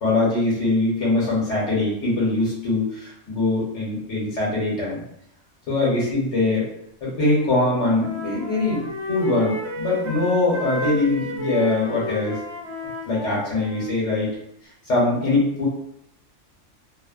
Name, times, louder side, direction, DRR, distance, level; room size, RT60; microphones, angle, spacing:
voice 1, 0.0-5.0 5.7-6.6 7.0-8.8 9.1-12.4 13.1-14.3 14.9-15.7, left 2 dB, 70° left, -5 dB, 1.2 m, -22 dB
Wind instrument woodwind instrument, 7.2-14.0, right 1 dB, 65° right, 1.0 m, -33 dB
2.8 x 2.1 x 2.4 m, 0.72 s
omnidirectional pair, 1.3 m